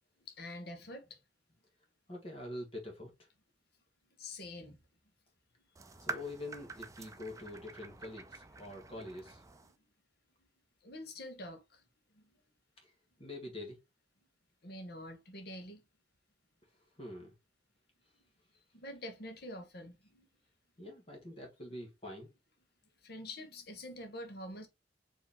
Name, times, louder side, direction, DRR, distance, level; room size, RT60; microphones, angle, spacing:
voice 1, 0.4-1.2 4.2-4.8 10.8-11.8 12.1-12.2 14.6-15.8 18.7-20.3 23.0-24.7, left 1 dB, 60° left, 1.2 m, -46 dB
voice 2, 2.1-3.3 6.0-9.4 12.8-12.9 13.2-13.8 17.0-17.3 20.8-22.3, left 1 dB, 30° left, 1.4 m, -45 dB
sound 1, 5.8-9.8, right 3 dB, 20° right, 0.5 m, -47 dB
4.7 x 3.0 x 3.5 m
head